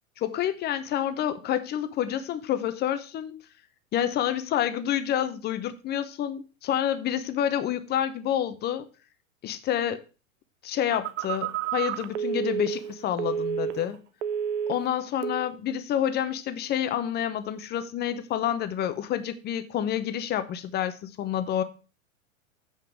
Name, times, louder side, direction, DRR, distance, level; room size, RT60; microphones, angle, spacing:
voice 1, 0.2-3.3 3.9-8.9 9.4-10.0 10.6-14.0 14.7-21.6, left 10 dB, 25° left, 0.9 m, -28 dB
Telephone, 10.9-14.0 14.2-14.9 15.2-15.5, right 8 dB, 60° right, 0.8 m, -30 dB
7.9 x 5.4 x 6.1 m
figure-of-eight pair, 95°, 40 cm